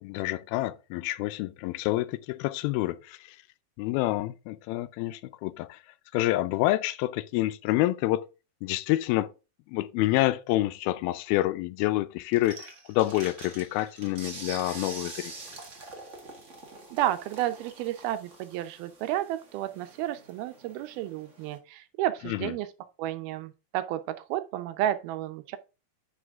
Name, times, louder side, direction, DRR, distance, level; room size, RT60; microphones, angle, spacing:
voice 1, 0.0-3.4 3.8-5.8 6.1-8.3 8.6-9.3 9.7-15.3 22.2-22.5, left 16 dB, 85° left, 2.5 m, -28 dB
sound 1, 12.3-21.6, right 3 dB, 60° right, 0.7 m, -45 dB
voice 2, 16.9-22.7 23.0-25.6, right 13 dB, 90° right, 2.7 m, -31 dB
9.8 x 5.9 x 3.6 m
omnidirectional pair, 4.3 m